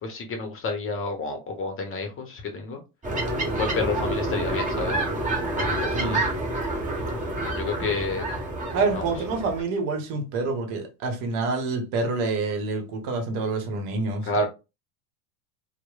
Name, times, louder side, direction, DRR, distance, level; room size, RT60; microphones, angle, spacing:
voice 1, 0.0-2.8 3.5-6.3 7.5-8.3 8.9-9.1 14.2-14.5, left 3 dB, 30° left, 0.7 m, -30 dB
sound 1, 3.0-9.6, right 2 dB, 15° right, 1.0 m, -28 dB
voice 2, 8.7-14.5, right 3 dB, 55° right, 0.9 m, -27 dB
3.0 x 2.1 x 2.2 m
hypercardioid pair, 85°, 45 cm